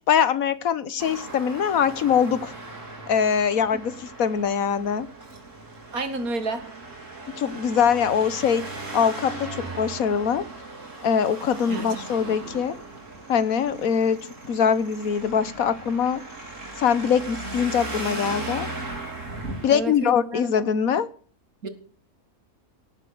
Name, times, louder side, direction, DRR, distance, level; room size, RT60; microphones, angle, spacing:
voice 1, 0.1-2.5 3.1-5.1 7.4-8.6 8.9-9.5 9.8-10.4 11.0-12.7 13.3-14.2 14.5-16.2 16.8-18.7 19.6-21.1, left 7 dB, 70° left, 15 dB, 1.4 m, -22 dB
Traffic noise roadway noise, 1.0-19.7, right 2 dB, 60° right, 4.2 m, -37 dB
voice 2, 5.9-6.6 11.7-12.6 19.7-20.5 21.6-21.7, right 2 dB, 75° right, 9 dB, 2.5 m, -31 dB
18.5 x 8.2 x 6.6 m, 0.43 s
omnidirectional pair, 1.5 m